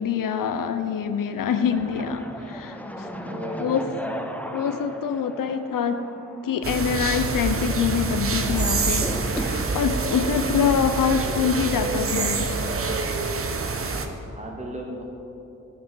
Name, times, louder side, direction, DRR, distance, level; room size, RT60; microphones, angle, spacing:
voice 1, 0.0-2.3 2.5-3.1 3.6-3.8 4.5-6.0 6.4-9.1 9.4-12.5, left 7 dB, 85° left, 8 dB, 0.6 m, -25 dB
sound 1, 1.7-9.7, equal, 5° left, 0.6 m, -37 dB
voice 2, 3.2-4.0 10.2-10.8 13.8-15.0, right 1 dB, 20° right, -1 dB, 1.8 m, -36 dB
sound 2, 6.6-14.1, right 4 dB, 45° right, 0.8 m, -26 dB
14.0 x 6.0 x 5.5 m, 2.9 s
wide cardioid pair, 105°, 32 cm